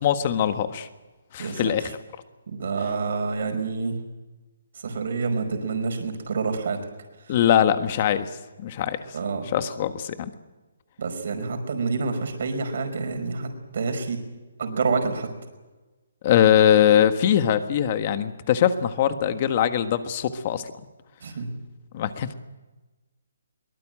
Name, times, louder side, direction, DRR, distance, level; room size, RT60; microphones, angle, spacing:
voice 1, 0.0-0.9 1.3-1.9 7.3-8.3 8.6-9.0 9.5-10.3 16.2-20.7 21.9-22.3, left 10 dB, 30° left, 10 dB, 1.4 m, -21 dB
voice 2, 1.4-1.7 2.5-4.0 4.8-6.8 7.2-7.4 9.1-9.5 11.0-14.2 14.6-15.3 21.2-21.5, right 4 dB, 55° right, 6 dB, 5.1 m, -28 dB
22.5 x 20.0 x 9.0 m, 1.2 s
hypercardioid pair, 170°, 0 cm